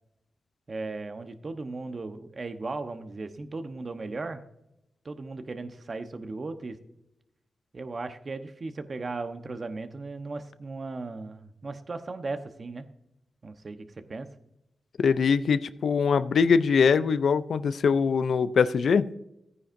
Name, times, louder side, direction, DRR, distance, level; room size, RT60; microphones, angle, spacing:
voice 1, 0.7-4.4 5.0-6.8 7.7-12.9 13.4-14.3, right 3 dB, 50° right, 8 dB, 1.0 m, -36 dB
voice 2, 15.0-19.1, left 6 dB, 80° left, 14 dB, 0.4 m, -22 dB
14.0 x 9.7 x 2.6 m, 0.85 s
cardioid pair, 65°, 0 cm